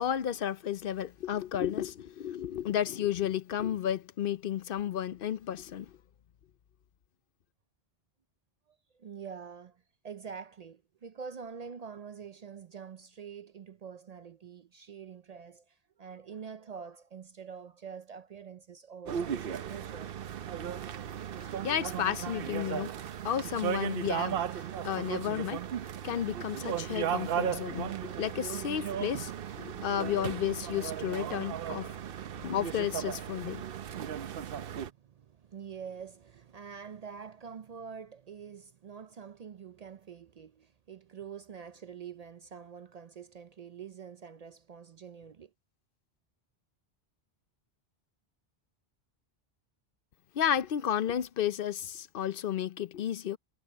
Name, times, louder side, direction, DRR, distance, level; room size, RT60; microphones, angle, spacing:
voice 1, 0.0-5.9 21.6-22.9 23.2-25.7 26.0-29.3 29.6-31.9 32.4-33.6 50.3-53.4, left 10 dB, 65° left, 0.7 m, -32 dB
voice 2, 8.7-20.1 34.9-45.5, right 6 dB, 50° right, 0.5 m, -46 dB
sound 1, 19.1-34.9, right 9 dB, 70° right, 0.9 m, -36 dB
omnidirectional pair, 1.0 m